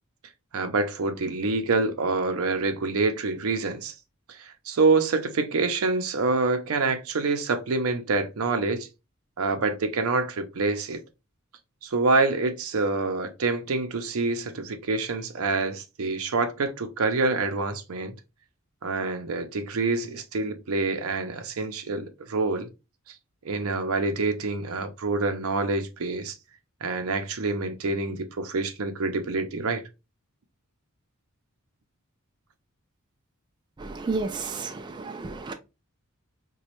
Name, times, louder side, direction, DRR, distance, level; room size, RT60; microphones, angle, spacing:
voice 1, 0.5-3.9 4.3-8.9 9.4-11.0 11.8-18.1 18.8-22.7 23.1-23.2 23.4-26.3 26.8-29.8, right 3 dB, 80° right, 0.6 m, -26 dB
voice 2, 33.8-35.5, right 3 dB, 20° right, 0.3 m, -32 dB
4.1 x 2.2 x 2.9 m
head